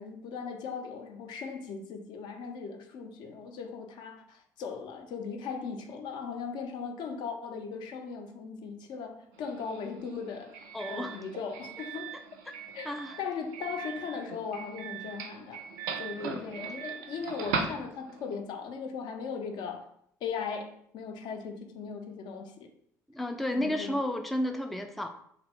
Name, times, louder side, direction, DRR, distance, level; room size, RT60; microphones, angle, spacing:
voice 1, 0.0-10.6 10.9-12.1 12.7-12.9 13.2-15.7 16.0-19.9 20.2-22.7 23.5-24.0, left 5 dB, 55° left, 0.5 m, -38 dB
Doorbell, 9.3-18.4, right 5 dB, 70° right, 0.4 m, -39 dB
voice 2, 10.7-11.2 12.9-13.2 16.2-16.7 23.1-25.1, left 1 dB, ahead, 0.3 m, -32 dB
2.9 x 2.5 x 3.4 m
figure-of-eight pair, 55°, 9 cm